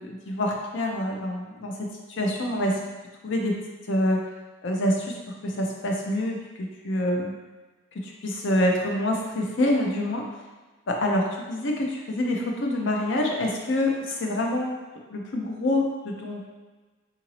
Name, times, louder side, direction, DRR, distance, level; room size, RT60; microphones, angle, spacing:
voice 1, 0.0-2.8 3.2-3.6 3.9-4.2 4.6-5.2 5.4-7.4 8.0-10.2 10.9-14.8 15.1-16.4, left 1 dB, 55° left, 1 dB, 0.5 m, -26 dB
3.8 x 2.6 x 3.0 m, 1.3 s
head